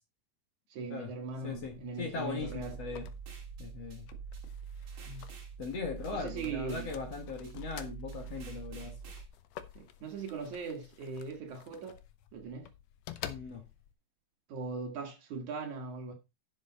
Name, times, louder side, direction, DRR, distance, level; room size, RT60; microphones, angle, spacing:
voice 1, 0.7-2.8 5.1-5.3 6.1-6.9 9.8-12.0 12.3-12.7 14.5-16.1, right 4 dB, 60° right, 2.7 m, -40 dB
sound 1, 1.3-13.9, left 10 dB, 80° left, 1.5 m, -51 dB
voice 2, 2.0-3.1 3.6-4.0 5.6-8.9 13.2-13.6, left 5 dB, 50° left, 2.6 m, -39 dB
sound 2, 2.4-9.3, right 7 dB, 40° right, 2.8 m, -45 dB
10.5 x 7.0 x 4.0 m
omnidirectional pair, 4.0 m